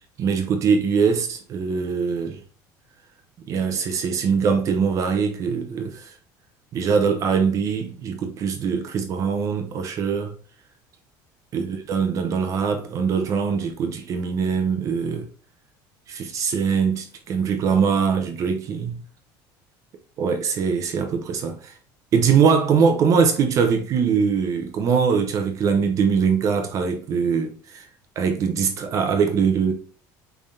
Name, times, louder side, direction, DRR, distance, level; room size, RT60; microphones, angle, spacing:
voice 1, 0.2-2.4 3.5-6.2 6.7-10.3 11.5-15.3 16.1-19.0 20.2-21.7 22.1-27.9 28.2-29.7, right 6 dB, 40° right, 0.7 m, -22 dB
5.5 x 3.4 x 2.6 m
cardioid pair, 150°, 9 cm